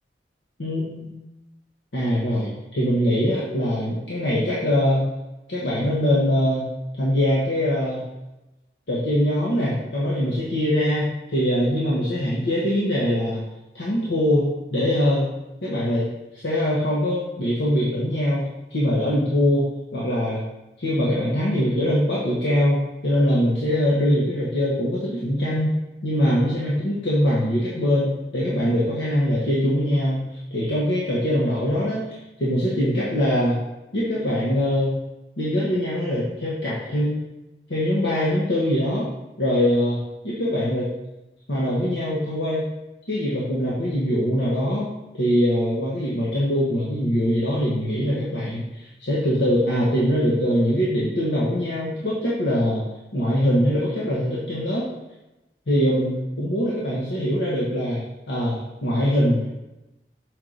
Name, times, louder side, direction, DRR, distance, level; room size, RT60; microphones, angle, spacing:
voice 1, 0.6-1.1 1.9-5.1 5.5-6.7 7.0-8.0 8.9-13.4 13.7-15.3 15.6-16.1 16.3-20.4 20.8-25.7 26.0-33.6 33.9-34.9 35.4-37.2 37.7-39.1 39.4-40.9 41.5-42.6 43.1-52.8 53.1-54.8 55.7-59.5, equal, 90° left, -6 dB, 1.2 m, -23 dB
6.2 x 4.6 x 3.9 m, 0.99 s
head